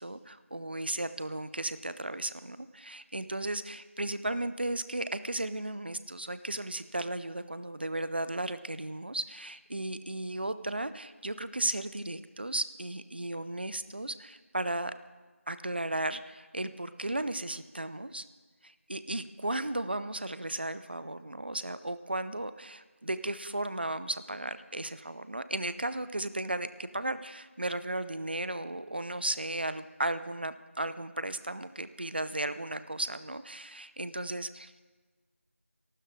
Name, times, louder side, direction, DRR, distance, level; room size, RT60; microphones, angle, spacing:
voice 1, 0.0-14.9 15.5-18.2 18.6-34.8, right 1 dB, 45° right, 13 dB, 0.7 m, -35 dB
23.5 x 12.5 x 3.7 m, 1.4 s
figure-of-eight pair, 170°, 8 cm